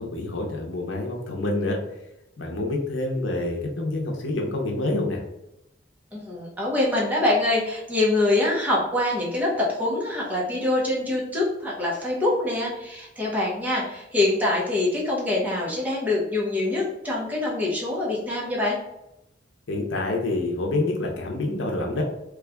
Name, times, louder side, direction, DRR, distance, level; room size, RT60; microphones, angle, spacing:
voice 1, 0.0-1.8 2.4-5.2 19.7-22.0, left 2 dB, 90° left, 1 dB, 0.7 m, -27 dB
voice 2, 6.1-18.8, left 2 dB, 10° right, -5 dB, 0.9 m, -24 dB
3.2 x 2.4 x 3.4 m, 0.87 s
head